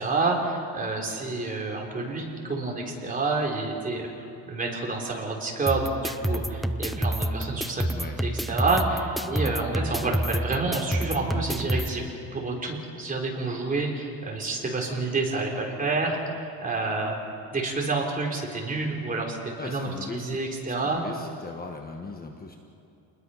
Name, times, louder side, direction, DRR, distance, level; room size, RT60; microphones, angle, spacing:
voice 1, 0.0-7.8 8.2-17.2 17.5-21.0, right 3 dB, 20° right, -1 dB, 3.8 m, -29 dB
sound 1, 5.7-11.9, right 1 dB, ahead, 0.5 m, -28 dB
voice 2, 7.9-8.2 9.2-9.5 19.6-20.4 20.6-22.6, left 3 dB, 25° left, 3 dB, 1.3 m, -39 dB
sound 2, 9.0-11.8, right 5 dB, 65° right, 6.1 m, -47 dB
28.5 x 21.0 x 5.7 m, 2.6 s
cardioid pair, 155°, 39 cm